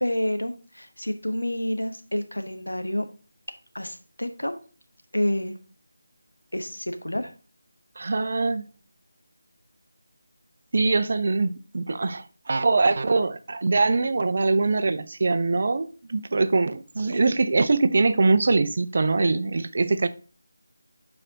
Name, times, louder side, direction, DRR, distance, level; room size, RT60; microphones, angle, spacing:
voice 1, 0.0-3.0 3.7-4.5 5.1-5.6 6.5-7.3, left 1 dB, 85° left, 1.1 m, -28 dB
voice 2, 8.0-8.7 10.7-20.1, right 3 dB, 50° right, 0.6 m, -23 dB
7.5 x 4.9 x 3.7 m
figure-of-eight pair, 160°, 0 cm